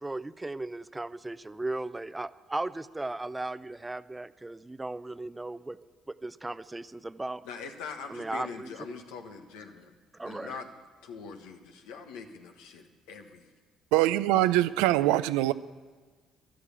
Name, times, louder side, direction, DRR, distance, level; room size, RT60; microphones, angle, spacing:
voice 1, 0.0-5.8 6.1-7.4 8.1-8.7 10.1-10.6, right 2 dB, 15° right, 15 dB, 0.6 m, -36 dB
voice 2, 7.4-10.0 10.2-10.7 11.0-13.5 14.2-14.5, left 5 dB, 80° left, 4 dB, 1.4 m, -43 dB
voice 3, 13.9-15.5, right 15 dB, 80° right, 14 dB, 0.5 m, -23 dB
12.5 x 11.5 x 8.7 m, 1.4 s
hypercardioid pair, 55°, 0 cm